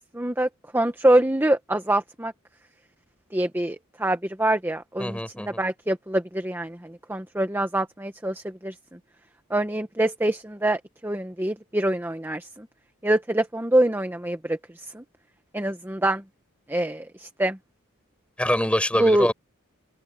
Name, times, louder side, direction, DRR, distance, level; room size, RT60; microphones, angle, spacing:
voice 1, 0.1-2.3 3.3-8.7 9.5-12.7 13.0-14.6 14.9-15.0 15.5-16.2 16.7-17.6 19.0-19.3, right 1 dB, 10° right, 1.1 m, -25 dB
voice 2, 5.0-5.6 18.4-19.3, left 1 dB, 5° left, 5.4 m, -24 dB
open air
head